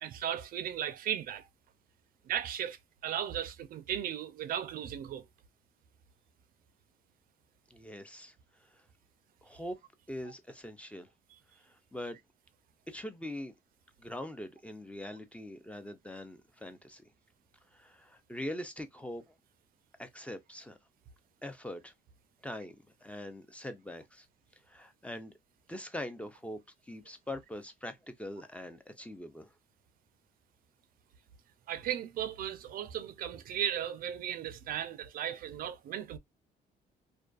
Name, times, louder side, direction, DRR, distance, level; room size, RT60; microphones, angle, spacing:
voice 1, 0.0-1.5 2.3-5.2 31.7-36.2, right 10 dB, 60° right, 0.4 m, -36 dB
voice 2, 7.7-8.3 8.7-8.8 9.4-9.8 10.1-11.1 11.6-12.2 12.9-13.5 14.0-17.0 17.7-19.3 20.0-20.8 21.4-21.9 22.4-22.8 23.0-24.3 24.7-25.3 25.7-26.6 26.9-29.5, left 1 dB, 5° left, 0.4 m, -42 dB
2.4 x 2.2 x 2.3 m
cardioid pair, 110°, 17 cm